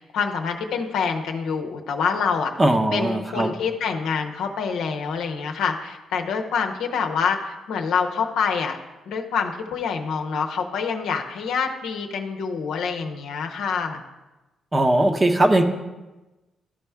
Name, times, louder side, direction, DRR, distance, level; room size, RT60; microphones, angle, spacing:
voice 1, 0.0-2.5 2.9-8.8 9.1-14.0, left 6 dB, 75° left, 3 dB, 0.7 m, -26 dB
voice 2, 2.6-3.5 14.7-15.6, right 1 dB, 30° right, 5 dB, 0.9 m, -19 dB
12.5 x 4.4 x 3.5 m, 1.1 s
supercardioid pair, 50°, 0 cm